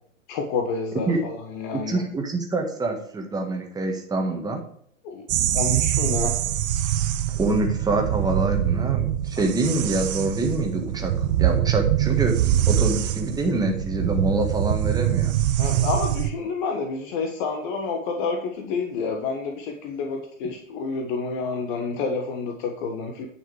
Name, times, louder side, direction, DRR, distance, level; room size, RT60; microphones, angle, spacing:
voice 1, 0.3-2.0 5.0-5.3 5.5-6.4 15.6-23.3, left 4 dB, 35° left, 4 dB, 1.4 m, -29 dB
voice 2, 1.7-4.6 7.3-11.1 11.4-15.3, right 2 dB, 10° right, 2 dB, 1.6 m, -26 dB
sound 1, 5.3-16.3, right 11 dB, 35° right, 0.8 m, -24 dB
10.5 x 5.9 x 4.9 m, 0.65 s
figure-of-eight pair, 105°, 40 cm